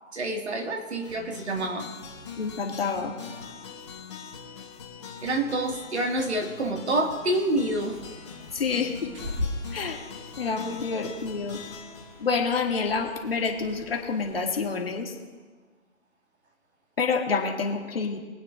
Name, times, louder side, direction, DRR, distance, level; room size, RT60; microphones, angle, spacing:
voice 1, 0.0-1.9 5.2-8.0, right 1 dB, 55° right, 2 dB, 2.2 m, -27 dB
sound 1, 1.0-13.3, left 6 dB, 20° left, 1.3 m, -43 dB
voice 2, 2.4-3.1 8.5-9.1 9.7-10.0 10.4-11.6 12.2-15.2 17.0-18.2, left 5 dB, 45° left, 1 dB, 1.8 m, -28 dB
Bird, 7.6-14.7, left 1 dB, 15° right, 1.8 m, -40 dB
23.5 x 9.0 x 2.6 m, 1.4 s
figure-of-eight pair, 160°, 40 cm